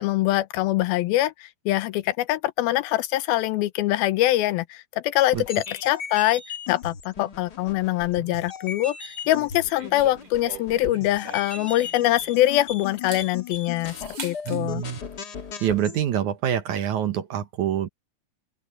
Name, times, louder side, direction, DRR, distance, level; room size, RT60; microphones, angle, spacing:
voice 1, 0.0-6.4 6.7-13.9 14.2-14.8, left 15 dB, 90° left, 2.7 m, -23 dB
sound 1, 5.3-16.0, left 6 dB, 45° left, 1.3 m, -37 dB
sound 2, 9.2-12.5 12.9-14.6, right 6 dB, 40° right, 3.1 m, -42 dB
voice 2, 14.5-15.0 15.6-17.9, right 10 dB, 65° right, 2.3 m, -26 dB
open air
omnidirectional pair, 4.2 m